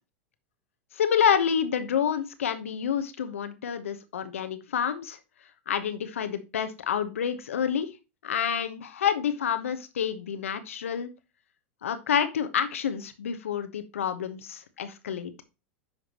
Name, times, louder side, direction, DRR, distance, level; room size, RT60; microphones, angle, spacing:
voice 1, 0.9-5.2 5.7-7.9 8.2-11.1 11.8-15.3, left 8 dB, 80° left, 10 dB, 1.0 m, -28 dB
9.7 x 5.8 x 2.9 m, 0.27 s
hypercardioid pair, 95°, 7 cm